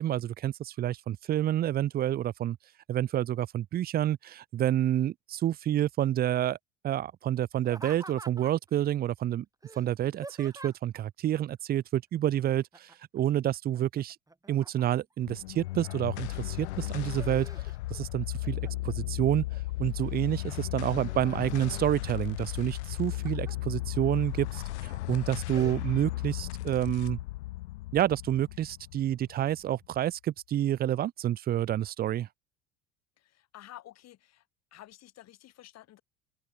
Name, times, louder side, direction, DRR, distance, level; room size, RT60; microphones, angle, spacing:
voice 1, 0.0-2.6 2.9-6.6 6.8-9.5 9.8-14.2 14.5-17.5 17.9-19.4 19.8-27.2 27.9-32.3, right 12 dB, 30° right, 0.4 m, -29 dB
Laughter, 7.6-8.7 9.6-11.0 12.7-13.2 13.5-15.1 15.7-16.3 16.8-18.0 18.4-19.0 19.5-20.3 20.7-21.6 22.7-23.6 24.1-24.2 24.7-25.0 25.5-25.8, right 2 dB, 10° right, 3.6 m, -48 dB
sound 1, 15.3-29.9, left 18 dB, 85° left, 0.8 m, -35 dB
voice 2, 33.2-34.5 34.7-36.0, left 14 dB, 50° left, 3.1 m, -51 dB
open air
hypercardioid pair, 80°, 33 cm